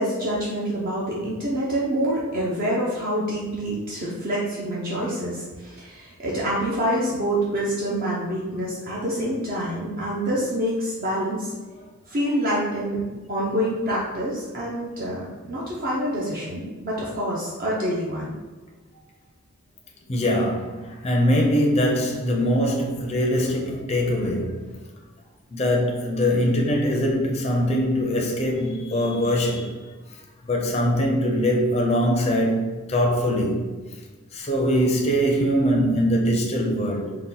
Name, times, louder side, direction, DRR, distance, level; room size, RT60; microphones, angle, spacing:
voice 1, 0.0-11.5 12.1-13.0 13.3-18.3, equal, 40° right, -5 dB, 0.5 m, -26 dB
voice 2, 20.1-24.6 25.5-29.7 30.4-33.6 34.3-37.2, equal, 30° left, -1 dB, 0.5 m, -22 dB
4.0 x 2.2 x 3.8 m, 1.3 s
head